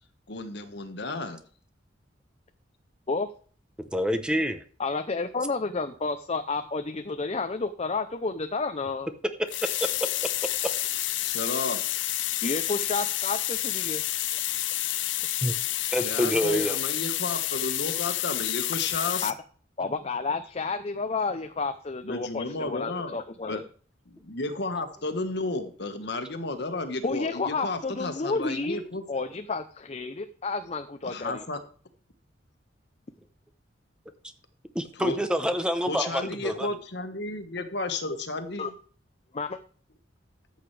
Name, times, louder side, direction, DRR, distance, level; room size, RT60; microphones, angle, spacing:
voice 1, 0.3-1.4 11.2-11.8 16.0-19.3 22.0-23.2 23.5-23.6 24.1-29.3 31.0-31.6 34.9-35.2 35.8-38.7, left 2 dB, 65° left, 7 dB, 1.5 m, -33 dB
voice 2, 3.8-4.6 15.4-15.5 15.9-16.8 34.7-36.7, equal, 5° right, 8 dB, 0.9 m, -27 dB
voice 3, 4.8-9.1 12.4-14.0 19.2-19.3 19.8-23.6 27.0-28.8 29.1-31.4 38.6-38.7 39.3-39.6, left 3 dB, 35° left, 7 dB, 0.7 m, -31 dB
sound 1, 9.5-19.3, left 15 dB, 90° left, 0.6 m, -29 dB
13.5 x 8.2 x 3.4 m, 0.43 s
head